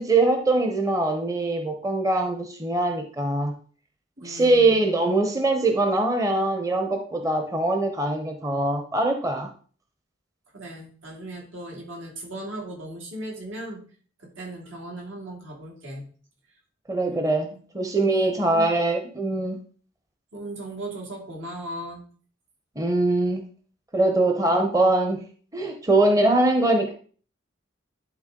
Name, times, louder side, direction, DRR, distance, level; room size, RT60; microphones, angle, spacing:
voice 1, 0.0-3.6 4.2-9.5 16.9-17.5 17.7-19.6 22.8-23.4 23.9-25.2 25.5-26.9, right 2 dB, 15° right, 4 dB, 0.7 m, -22 dB
voice 2, 4.2-4.7 10.5-13.8 14.2-16.1 17.0-17.6 18.1-18.7 20.3-22.0, right 1 dB, 80° right, -1 dB, 2.6 m, -37 dB
11.0 x 4.0 x 3.7 m, 0.43 s
head